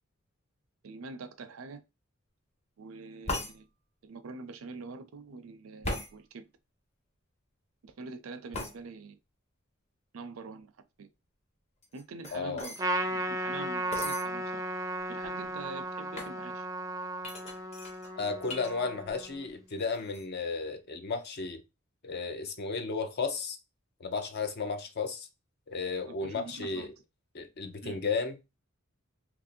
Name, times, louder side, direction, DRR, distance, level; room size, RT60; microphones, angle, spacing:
voice 1, 0.8-1.8 2.8-3.7 4.0-6.5 7.8-9.2 10.1-10.7 11.0-11.1 11.9-12.8 13.0-14.6 15.1-16.7 26.1-26.9 27.8-28.0, right 4 dB, 80° right, 0.5 m, -45 dB
sound 1, 3.3-3.5 5.8-6.1 8.5-8.8 11.8-12.8 13.9-14.3 15.0-15.1 15.2-15.6 16.1-16.4 17.2-18.7 19.0-19.5 19.8-20.2, left 2 dB, 30° left, 1.0 m, -38 dB
voice 2, 12.3-12.7 18.2-21.6 22.0-23.6 24.0-25.3 25.7-26.9 27.3-28.4, left 4 dB, 50° left, 0.6 m, -34 dB
Trumpet, 12.8-19.5, right 1 dB, 15° right, 0.4 m, -35 dB
2.9 x 2.6 x 4.2 m
head